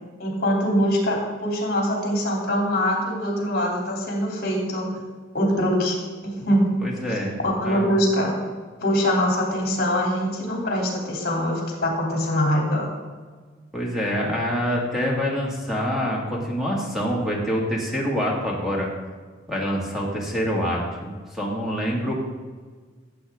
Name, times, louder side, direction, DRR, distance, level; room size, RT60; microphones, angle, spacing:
voice 1, 0.2-4.9 5.3-6.0 6.2-6.8 7.4-8.4 8.8-12.9, equal, 50° left, -2 dB, 3.1 m, -23 dB
voice 2, 6.8-7.4 7.6-7.9 13.7-18.9 19.5-22.2, equal, ahead, -3 dB, 2.1 m, -26 dB
14.0 x 7.9 x 3.7 m, 1.5 s
head